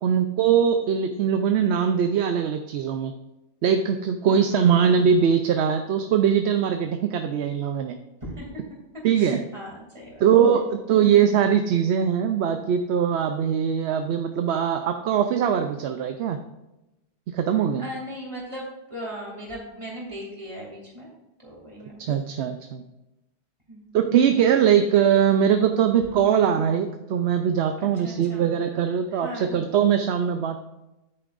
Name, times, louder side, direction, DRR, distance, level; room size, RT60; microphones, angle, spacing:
voice 1, 0.0-3.1 3.6-8.0 9.0-9.4 10.2-16.4 17.3-17.8 22.0-22.8 23.9-30.6, right 8 dB, 80° right, 6 dB, 0.9 m, -21 dB
voice 2, 4.3-4.7 8.2-8.8 9.2-10.2 17.8-21.1 21.4-22.2 23.7-24.1 26.2-26.7 28.0-28.5 29.1-29.6, equal, 25° right, -4 dB, 2.7 m, -38 dB
9.9 x 8.6 x 2.5 m, 0.96 s
omnidirectional pair, 1.1 m